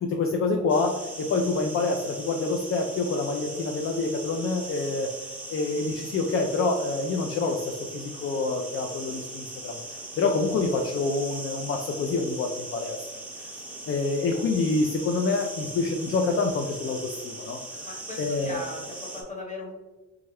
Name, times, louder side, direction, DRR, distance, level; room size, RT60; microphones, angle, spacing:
voice 1, 0.0-5.1 5.5-9.8 10.2-13.1 13.9-17.6 18.2-18.6, left 3 dB, 45° left, 3 dB, 0.4 m, -27 dB
sound 1, 0.7-19.2, right 2 dB, 5° right, 0.8 m, -40 dB
voice 2, 17.8-19.8, left 2 dB, 25° left, -1 dB, 1.1 m, -38 dB
3.5 x 2.1 x 3.4 m, 1.1 s
cardioid pair, 90°, 30 cm